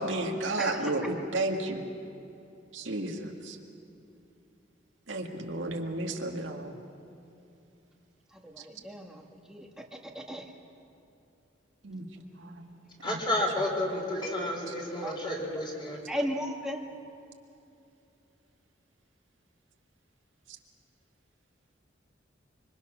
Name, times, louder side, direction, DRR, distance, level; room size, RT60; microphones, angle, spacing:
voice 1, 0.0-1.9 2.7-3.6 5.1-6.8 11.8-12.6 13.0-13.2 14.7-14.8, right 2 dB, 80° right, 2 dB, 1.9 m, -33 dB
voice 2, 0.6-0.9 8.5-9.2 9.5-9.7 10.2-10.4 15.0-15.4 16.1-16.9, equal, 5° right, 1 dB, 1.8 m, -35 dB
voice 3, 13.0-16.0, left 1 dB, 25° left, -1 dB, 4.3 m, -31 dB
26.0 x 24.0 x 6.2 m, 2.7 s
head